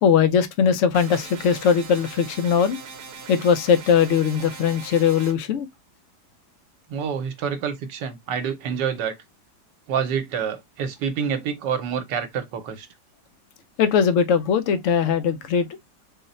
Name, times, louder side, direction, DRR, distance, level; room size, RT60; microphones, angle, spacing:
voice 1, 0.0-2.8 3.3-5.7 13.8-15.7, left 7 dB, 70° left, 0.7 m, -20 dB
sound 1, 0.9-5.3, right 5 dB, 55° right, 0.9 m, -40 dB
voice 2, 6.9-9.1 9.9-12.9, right 7 dB, 80° right, 1.3 m, -27 dB
3.9 x 2.1 x 3.9 m
omnidirectional pair, 1.9 m